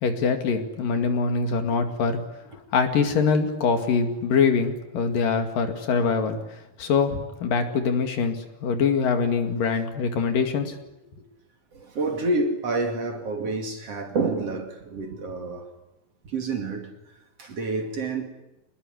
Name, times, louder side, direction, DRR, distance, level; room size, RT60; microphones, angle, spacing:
voice 1, 0.0-2.2 2.7-6.4 6.8-10.8, left 5 dB, 70° left, 3.8 m, -23 dB
voice 2, 11.7-15.7 16.2-18.3, right 3 dB, 45° right, 3.2 m, -29 dB
26.5 x 20.5 x 9.9 m
omnidirectional pair, 4.1 m